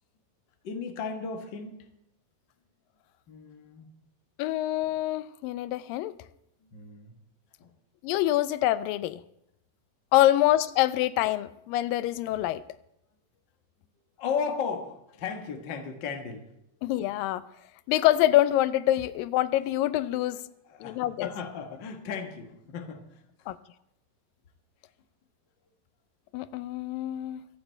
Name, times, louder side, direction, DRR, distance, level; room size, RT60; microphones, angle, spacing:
voice 1, 0.6-1.8 3.3-3.9 6.7-7.1 7.6-7.7 14.2-16.5 20.1-20.3 20.7-23.5, left 6 dB, 50° left, 5 dB, 1.4 m, -35 dB
voice 2, 4.4-6.2 8.0-9.2 10.1-12.6 16.8-17.4 17.9-20.4 20.8-21.3 23.5-23.6 26.3-27.4, left 14 dB, 85° left, 15 dB, 2.3 m, -25 dB
25.0 x 8.8 x 4.5 m, 0.80 s
omnidirectional pair, 4.0 m